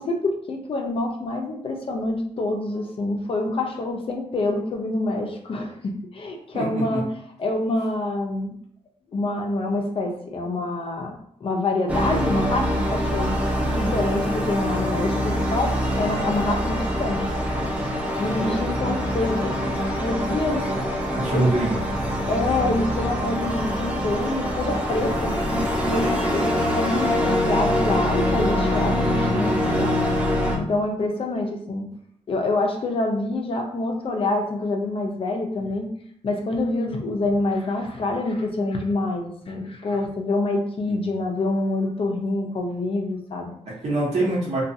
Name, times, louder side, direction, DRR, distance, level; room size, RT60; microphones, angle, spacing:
voice 1, 0.0-7.0 7.4-8.5 9.1-11.1 11.4-13.4 13.7-17.3 18.2-20.6 21.3-21.5 22.3-30.0 30.6-31.9 32.3-35.9 36.2-43.5, left 2 dB, 50° left, 1 dB, 0.5 m, -26 dB
voice 2, 6.5-7.0 18.3-18.6 20.6-20.7 21.2-21.7 40.8-41.2 43.7-44.6, right 2 dB, 60° right, -7 dB, 1.0 m, -25 dB
Celestial temple, 11.9-30.6, equal, 10° right, 0.4 m, -24 dB
2.5 x 2.3 x 2.6 m, 0.65 s
wide cardioid pair, 145°, 12 cm